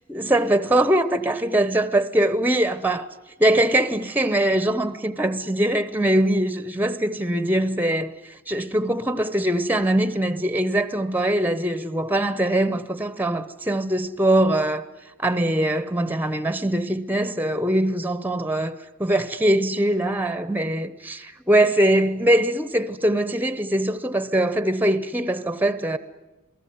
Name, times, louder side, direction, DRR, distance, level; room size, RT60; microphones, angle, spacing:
voice 1, 0.1-3.1 3.4-14.9 15.2-26.0, right 1 dB, 10° right, 0.9 m, -22 dB
27.5 x 18.5 x 9.5 m
head